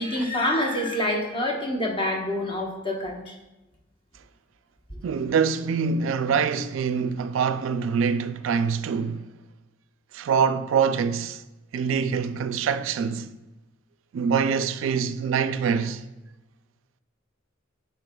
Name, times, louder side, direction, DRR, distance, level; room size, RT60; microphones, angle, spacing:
voice 1, 0.0-3.3, left 1 dB, 25° left, 1.1 m, -26 dB
voice 2, 5.0-9.2 10.1-11.4 11.7-13.4 14.1-16.0, right 6 dB, 80° right, 0.3 m, -25 dB
11.0 x 4.4 x 2.3 m
head